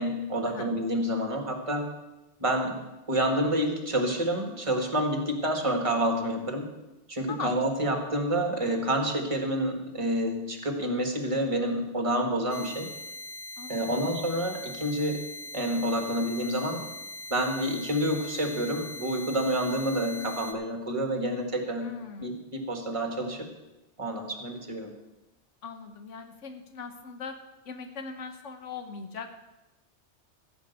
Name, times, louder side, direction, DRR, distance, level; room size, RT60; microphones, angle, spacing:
voice 1, 0.0-1.9 2.4-2.8 3.1-6.7 7.1-12.9 13.7-15.2 15.5-16.8 17.3-21.9 22.2-23.5 24.0-24.9, right 1 dB, 25° right, 4 dB, 1.7 m, -28 dB
sound 1, 12.5-20.5, left 2 dB, 65° left, 1.2 m, -41 dB
voice 2, 13.6-14.1 21.8-22.3 25.6-27.4 27.7-29.4, left 5 dB, 90° left, 7 dB, 1.3 m, -40 dB
15.0 x 5.2 x 8.0 m, 1.0 s
omnidirectional pair, 1.2 m